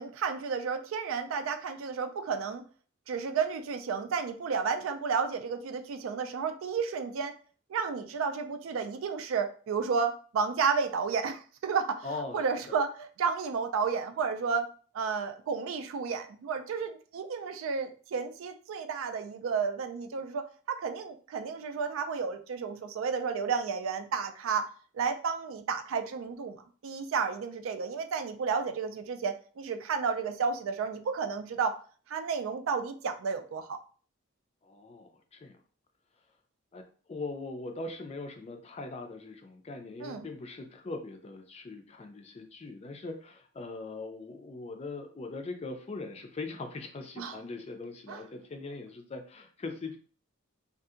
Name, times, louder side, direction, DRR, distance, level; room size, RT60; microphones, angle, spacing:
voice 1, 0.0-2.6 3.1-7.3 7.7-14.7 14.9-24.7 24.9-31.8 32.1-33.8 40.0-40.3 47.2-47.4 48.1-48.2, right 5 dB, 75° right, 7 dB, 0.3 m, -32 dB
voice 2, 12.0-12.4 34.6-35.5 36.7-36.8 37.1-50.0, left 3 dB, 30° left, 5 dB, 0.4 m, -41 dB
2.7 x 2.4 x 2.4 m, 0.41 s
head